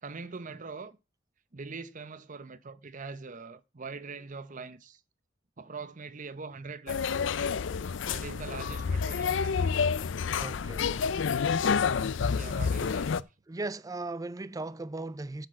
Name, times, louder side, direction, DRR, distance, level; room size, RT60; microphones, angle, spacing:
voice 1, 0.0-1.0 1.5-5.0 5.6-7.2 8.1-9.7 12.3-13.1, right 4 dB, 40° right, 0.8 m, -42 dB
sound 1, 6.9-13.2, left 6 dB, 70° left, 0.5 m, -29 dB
voice 2, 10.4-11.3 13.5-15.5, right 2 dB, 20° right, 0.4 m, -38 dB
7.6 x 6.0 x 7.5 m
head